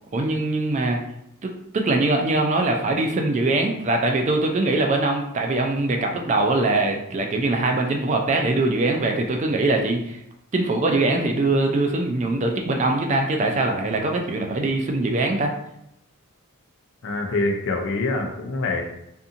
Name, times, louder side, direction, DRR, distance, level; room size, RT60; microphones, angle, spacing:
voice 1, 0.1-1.0 1.4-10.2 10.5-15.5, right 2 dB, 35° right, 3 dB, 0.3 m, -22 dB
voice 2, 17.0-18.8, left 2 dB, 60° left, 2 dB, 0.5 m, -25 dB
2.6 x 2.6 x 2.4 m, 0.79 s
head